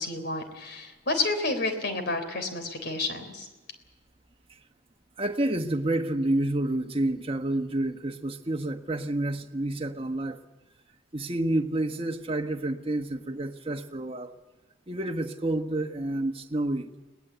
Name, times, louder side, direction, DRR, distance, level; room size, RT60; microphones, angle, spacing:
voice 1, 0.0-3.5, left 2 dB, 55° left, 8 dB, 3.7 m, -30 dB
voice 2, 5.2-10.4 11.1-14.4 14.9-16.9, right 1 dB, 30° right, 5 dB, 1.3 m, -29 dB
21.5 x 19.0 x 8.1 m, 1.2 s
head